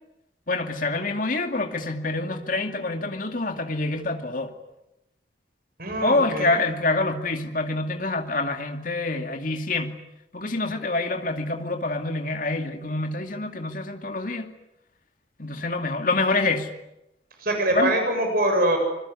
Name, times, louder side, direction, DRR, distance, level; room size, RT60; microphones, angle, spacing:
voice 1, 0.5-4.5 6.0-9.9 10.3-14.5 15.4-16.7 17.7-17.9, left 2 dB, 45° left, 5 dB, 2.5 m, -26 dB
voice 2, 5.8-6.6 17.4-18.8, right 1 dB, 50° right, 4 dB, 7.7 m, -23 dB
26.5 x 22.0 x 9.8 m, 0.88 s
head